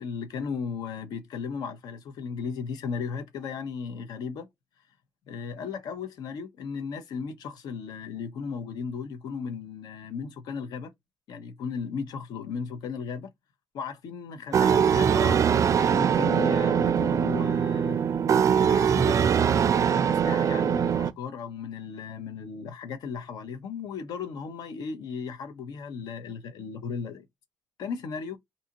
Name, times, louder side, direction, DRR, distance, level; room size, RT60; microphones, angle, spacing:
voice 1, 0.0-4.5 5.3-10.9 11.3-13.3 13.7-18.0 18.6-19.3 19.7-27.3 27.8-28.4, left 5 dB, 70° left, 0.8 m, -35 dB
sound 1, 14.5-21.1, right 8 dB, 50° right, 0.4 m, -22 dB
2.7 x 2.3 x 2.9 m
supercardioid pair, 55°, 7 cm